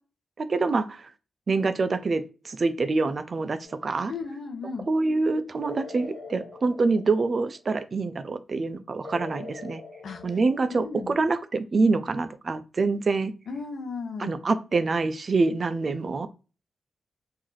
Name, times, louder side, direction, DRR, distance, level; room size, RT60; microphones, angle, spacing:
voice 1, 0.4-1.1 1.5-4.1 4.9-9.8 10.2-13.3 14.2-16.3, right 3 dB, 35° right, 12 dB, 0.3 m, -26 dB
sound 1, 3.6-4.2 5.6-7.7 9.0-11.1, left 3 dB, 20° left, 1.0 m, -43 dB
voice 2, 4.1-4.9 10.0-10.2 10.7-11.2 13.5-14.3, left 4 dB, 65° left, 3 dB, 0.9 m, -35 dB
3.1 x 2.6 x 3.8 m, 0.33 s
wide cardioid pair, 165°, 0 cm